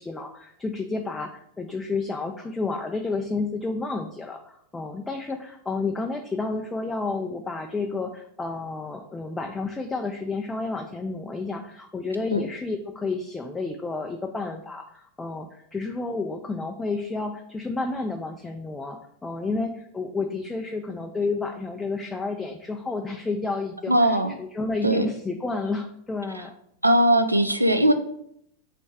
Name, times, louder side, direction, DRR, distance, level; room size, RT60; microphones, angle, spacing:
voice 1, 0.0-26.5, left 3 dB, 10° left, 3 dB, 0.3 m, -31 dB
voice 2, 23.9-24.3 24.8-25.1 26.8-27.9, right 1 dB, 85° right, 8 dB, 0.3 m, -19 dB
3.3 x 3.1 x 4.6 m, 0.72 s
figure-of-eight pair, 90°, 0 cm